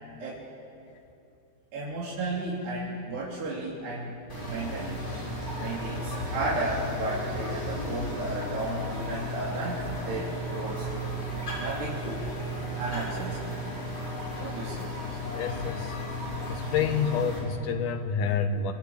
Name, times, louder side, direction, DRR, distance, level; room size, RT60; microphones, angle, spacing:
voice 1, 1.7-5.0 5.6-10.9 11.6-12.2 12.8-13.4 14.4-15.2, right 2 dB, 85° right, -6 dB, 5.6 m, -34 dB
sound 1, 4.3-17.4, equal, 15° left, 8.1 m, -34 dB
voice 2, 15.3-16.0 16.5-18.7, left 6 dB, 65° left, 6 dB, 2.5 m, -28 dB
29.0 x 23.5 x 8.8 m, 2.7 s
omnidirectional pair, 4.6 m